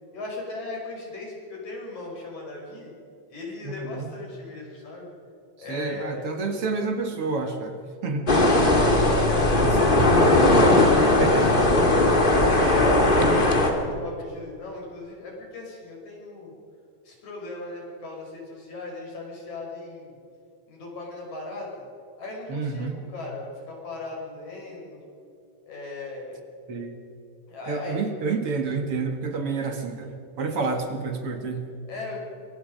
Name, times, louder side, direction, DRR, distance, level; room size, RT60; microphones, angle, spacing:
voice 1, 0.1-2.9 3.3-5.1 5.6-6.2 8.3-8.8 9.2-10.2 10.9-11.7 12.4-16.5 17.1-20.1 20.7-21.8 22.2-25.0 25.7-26.4 27.5-28.0 30.5-30.6 31.9-32.2, left 3 dB, 75° left, -1 dB, 7.1 m, -37 dB
voice 2, 3.6-4.1 5.7-8.3 9.5-10.1 11.2-11.5 22.5-23.0 26.7-26.9 27.7-31.7, right 4 dB, 55° right, 5 dB, 2.4 m, -29 dB
sound 1, 8.3-13.7, left 2 dB, 20° left, 2.1 m, -18 dB
25.5 x 23.5 x 5.3 m, 2.6 s
omnidirectional pair, 3.3 m